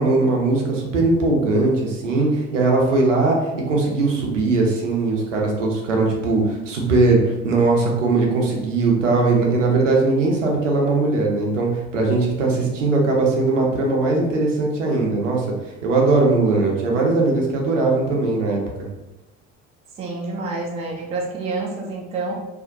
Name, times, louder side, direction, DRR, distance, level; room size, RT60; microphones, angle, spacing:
voice 1, 0.0-15.5 15.8-18.6, right 3 dB, 75° right, -1 dB, 0.6 m, -19 dB
voice 2, 20.0-22.3, right 3 dB, 20° right, -2 dB, 0.4 m, -28 dB
2.6 x 2.0 x 2.6 m, 1.0 s
figure-of-eight pair, 60°, 37 cm